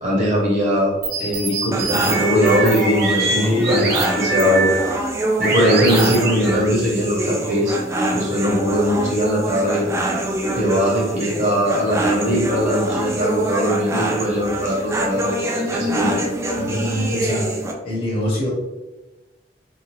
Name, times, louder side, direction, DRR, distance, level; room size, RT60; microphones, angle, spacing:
voice 1, 0.0-4.7 5.4-7.8 8.1-9.8 10.5-16.2, equal, 40° right, -5 dB, 1.1 m, -20 dB
sound 1, 1.0-5.0 5.4-6.7, right 3 dB, 65° right, 0.6 m, -25 dB
sound 2, 1.7-17.7, right 1 dB, 15° right, 0.3 m, -25 dB
voice 2, 3.3-3.9 15.1-15.2 16.5-17.5 17.8-18.5, equal, 30° left, -5 dB, 1.0 m, -23 dB
2.8 x 2.3 x 3.0 m, 1.1 s
head